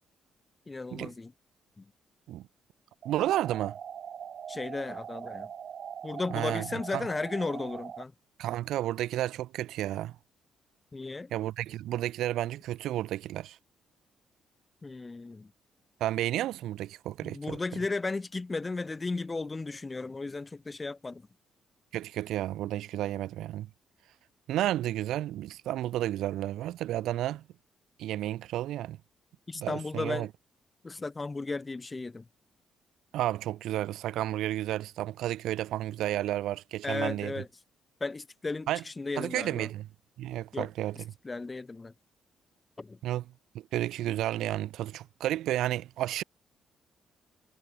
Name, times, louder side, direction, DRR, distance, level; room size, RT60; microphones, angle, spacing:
voice 1, 0.7-1.3 1.8-1.9 4.5-5.5 6.0-8.1 10.9-11.3 14.8-15.5 17.2-21.3 29.5-30.3 30.8-32.3 36.8-37.5 38.0-39.7 40.5-40.7 41.2-41.9 42.8-43.0, left 3 dB, 25° left, 1.7 m, -35 dB
sound 1, 3.0-8.0, right 8 dB, 55° right, 6.3 m, -42 dB
voice 2, 3.0-3.8 6.3-6.6 6.9-7.0 8.4-10.1 11.3-13.6 16.0-17.6 21.9-23.7 24.5-27.4 28.0-29.0 29.5-30.3 33.1-37.3 38.7-38.8 39.2-39.8 40.2-41.0 43.0-43.2 43.5-46.2, right 13 dB, 85° right, 1.0 m, -32 dB
cardioid pair, 90°, 0 cm